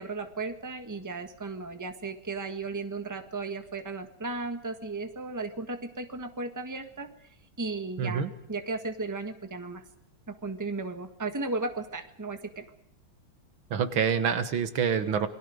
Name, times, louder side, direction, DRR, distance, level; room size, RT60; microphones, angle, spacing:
voice 1, 0.0-7.1 7.6-9.8 10.3-12.6, right 3 dB, 10° right, 7 dB, 1.4 m, -35 dB
voice 2, 8.0-8.3 13.7-15.3, right 7 dB, 75° right, 10 dB, 2.2 m, -26 dB
28.5 x 22.5 x 5.1 m, 0.80 s
omnidirectional pair, 2.2 m